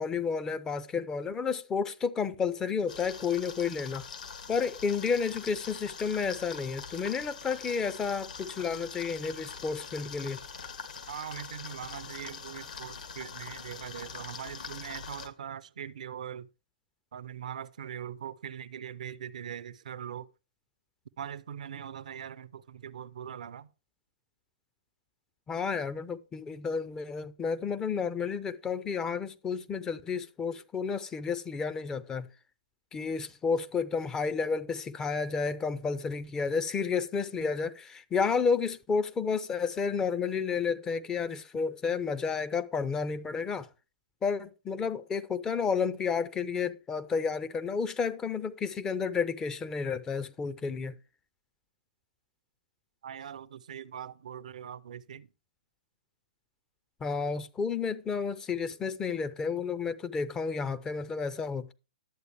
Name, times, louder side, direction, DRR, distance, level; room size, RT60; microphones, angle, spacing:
voice 1, 0.0-4.0 4.5-10.4 25.5-32.3 32.9-43.7 44.2-50.9 57.0-61.7, left 5 dB, 15° left, 0.5 m, -31 dB
sound 1, 2.9-15.3, left 6 dB, 60° left, 1.5 m, -43 dB
voice 2, 11.1-16.5 17.1-20.3 21.2-23.7 53.0-55.3, right 9 dB, 60° right, 0.5 m, -41 dB
11.0 x 8.0 x 3.3 m
figure-of-eight pair, 120°, 5 cm